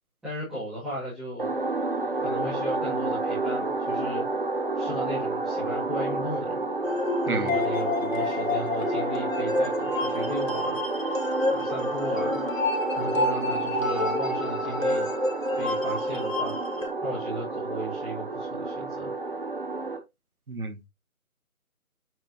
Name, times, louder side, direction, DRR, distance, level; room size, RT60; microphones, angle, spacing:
voice 1, 0.2-1.5 2.2-4.3 4.7-6.6 7.2-10.8 11.5-12.4 12.9-15.1 15.5-16.5 17.0-19.1, equal, ahead, 2.2 m, -36 dB
sound 1, 1.4-20.0, right 3 dB, 40° right, 1.3 m, -30 dB
sound 2, 6.8-16.9, left 2 dB, 65° left, 2.8 m, -29 dB
voice 2, 20.5-20.9, right 3 dB, 80° right, 2.2 m, -31 dB
8.7 x 5.6 x 3.0 m
figure-of-eight pair, 175°, 43 cm